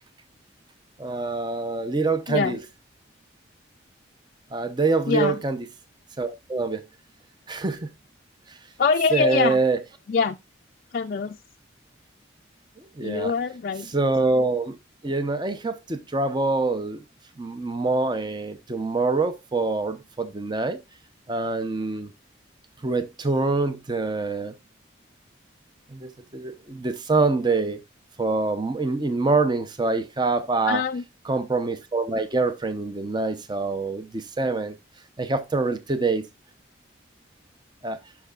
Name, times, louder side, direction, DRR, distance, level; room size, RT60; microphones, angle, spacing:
voice 1, 1.0-2.6 4.5-5.6 6.2-6.8 7.5-7.9 8.5-8.6 9.1-9.8 12.8-13.3 13.9-14.7 15.0-17.0 17.4-20.8 21.3-22.1 22.8-24.5 25.9-27.8 28.2-30.8 31.3-34.8 35.2-36.3 37.8-38.0, right 3 dB, 20° right, 0.6 m, -25 dB
voice 2, 5.1-5.4 8.8-9.6 10.1-10.4 10.9-11.4 13.0-13.9 30.6-31.0, left 5 dB, 45° left, 0.3 m, -24 dB
12.0 x 5.9 x 2.3 m
head